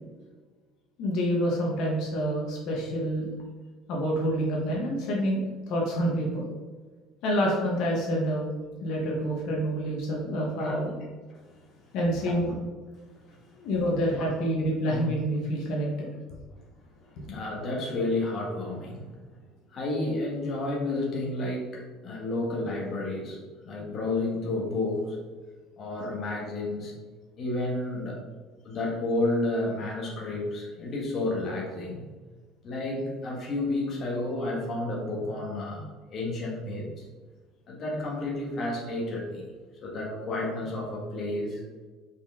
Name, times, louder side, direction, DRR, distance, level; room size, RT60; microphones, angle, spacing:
voice 1, 1.0-3.3 3.9-5.4 5.7-6.4 7.2-8.5 8.8-10.9 11.9-12.6 13.6-16.1 17.2-17.3, equal, 55° left, -2 dB, 1.3 m, -27 dB
voice 2, 17.0-19.1 19.7-23.4 23.6-25.2 25.8-26.9 27.4-28.2 28.6-32.0 32.6-37.0 37.7-39.4 39.8-41.6, left 2 dB, 30° left, -3 dB, 1.5 m, -31 dB
5.3 x 5.2 x 3.6 m, 1.4 s
cardioid pair, 170°, 0 cm